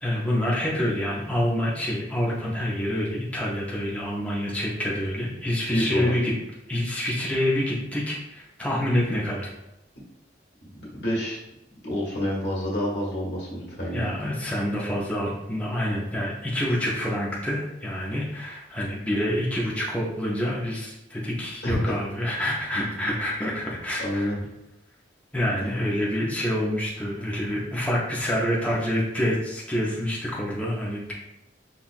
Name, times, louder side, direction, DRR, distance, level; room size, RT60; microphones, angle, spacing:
voice 1, 0.0-6.3 6.7-9.5 13.9-24.3 25.3-31.1, equal, 10° left, -5 dB, 0.5 m, -27 dB
voice 2, 5.7-6.1 10.6-11.4 11.8-14.1 21.6-21.8 24.0-24.4 25.6-25.7, equal, 75° left, -5 dB, 1.4 m, -28 dB
5.5 x 2.3 x 2.4 m, 0.89 s
head